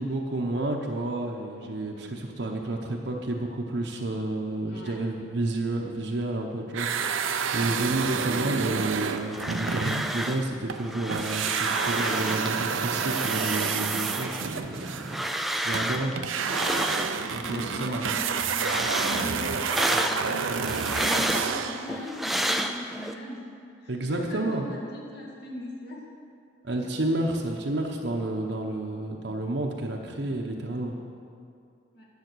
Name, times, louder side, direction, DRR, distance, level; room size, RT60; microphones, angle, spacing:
voice 1, 0.0-14.9 15.2-16.1 17.3-18.2 23.9-24.7 26.6-30.9, right 2 dB, 60° right, 0 dB, 0.9 m, -30 dB
sound 1, 6.7-10.8 11.1-21.9, right 6 dB, 80° right, 0.6 m, -30 dB
sound 2, 9.1-10.5 10.7-12.5 12.9-17.6 18.0-23.1, equal, ahead, 0.3 m, -31 dB
voice 2, 17.4-23.4 23.8-26.0 31.9-32.0, left 1 dB, 55° left, -3 dB, 1.9 m, -40 dB
10.5 x 7.7 x 6.2 m, 2.4 s
head